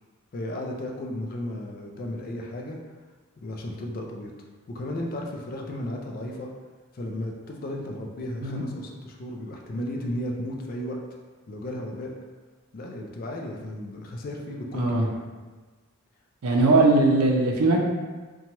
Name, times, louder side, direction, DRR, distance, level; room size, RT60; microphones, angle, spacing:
voice 1, 0.3-2.8 3.4-4.3 4.7-6.5 6.9-11.0 11.5-12.1 12.7-15.2, left 1 dB, 40° left, 1 dB, 0.3 m, -34 dB
voice 2, 14.7-15.1 16.4-17.8, right 2 dB, 85° right, 0 dB, 0.5 m, -20 dB
2.8 x 2.2 x 2.9 m, 1.3 s
head